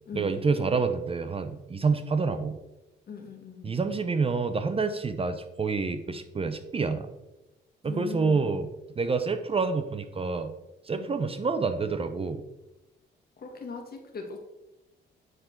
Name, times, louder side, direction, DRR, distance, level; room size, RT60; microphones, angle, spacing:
voice 1, 0.1-2.6 3.6-7.1 7.8-10.5 10.9-12.4, right 4 dB, 30° right, 10 dB, 0.6 m, -28 dB
voice 2, 3.1-3.8 7.8-8.6 11.0-11.2 13.4-14.4, left 5 dB, 50° left, 3 dB, 1.6 m, -40 dB
9.3 x 3.8 x 4.4 m, 0.97 s
cardioid pair, 90°, 20 cm